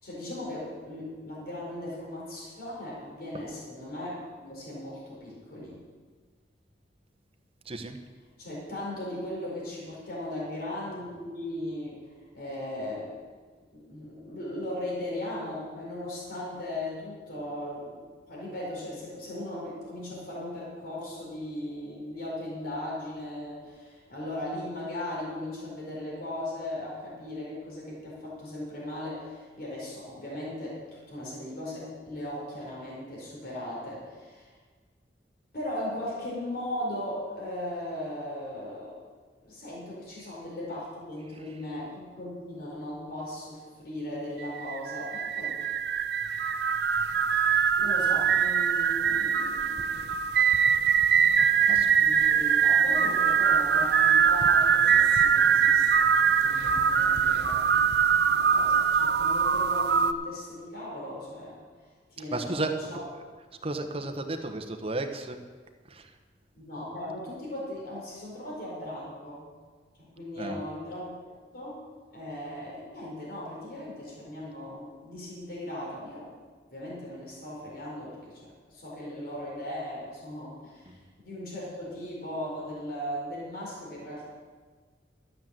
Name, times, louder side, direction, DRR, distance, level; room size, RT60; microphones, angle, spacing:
voice 1, 0.0-5.8 8.4-13.1 13.7-34.5 35.5-39.0 39.4-45.6 47.8-50.1 52.0-56.1 56.4-57.7 58.3-61.6 62.1-63.0 66.5-69.4 70.0-71.1 71.5-71.8 72.1-76.3 76.7-84.3, left 1 dB, 55° left, -5 dB, 4.5 m, -38 dB
voice 2, 7.7-8.0 41.4-41.6 51.7-51.9 62.2-63.3 63.6-65.4 65.9-66.1 70.4-70.6 80.9-81.0, right 2 dB, 35° right, 5 dB, 1.1 m, -34 dB
sound 1, 44.4-60.1, right 7 dB, 65° right, 0.5 m, -23 dB
12.5 x 7.7 x 7.5 m, 1.5 s
head